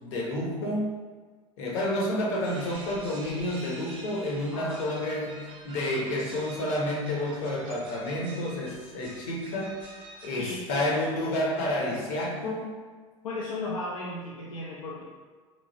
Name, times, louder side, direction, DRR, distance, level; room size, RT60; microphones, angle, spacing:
voice 1, 0.0-0.9 1.6-9.8 10.2-12.8, left 1 dB, 55° left, -2 dB, 0.8 m, -30 dB
sound 1, 2.4-10.5, right 2 dB, 30° right, 0.6 m, -47 dB
voice 2, 4.5-5.0 10.4-10.6 13.2-15.0, left 2 dB, 75° left, -5 dB, 0.4 m, -35 dB
3.0 x 2.4 x 2.7 m, 1.5 s
figure-of-eight pair, 70°, 17 cm